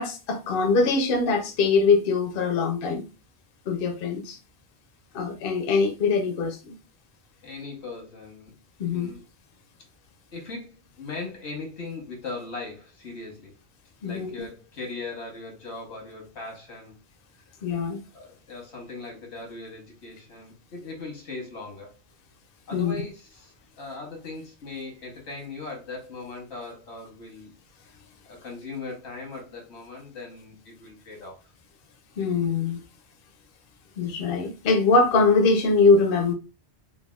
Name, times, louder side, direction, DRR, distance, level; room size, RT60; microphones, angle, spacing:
voice 1, 0.0-3.0 3.7-4.4 5.1-6.8 8.8-9.1 14.0-14.3 17.6-18.0 22.7-22.9 32.2-32.8 34.0-36.3, left 4 dB, 65° left, 0.7 m, -22 dB
voice 2, 7.4-8.5 8.9-9.2 10.3-13.5 14.0-16.9 18.1-22.0 22.7-27.5 28.2-31.4, left 3 dB, 85° left, 1.3 m, -39 dB
3.4 x 2.2 x 2.2 m
omnidirectional pair, 1.1 m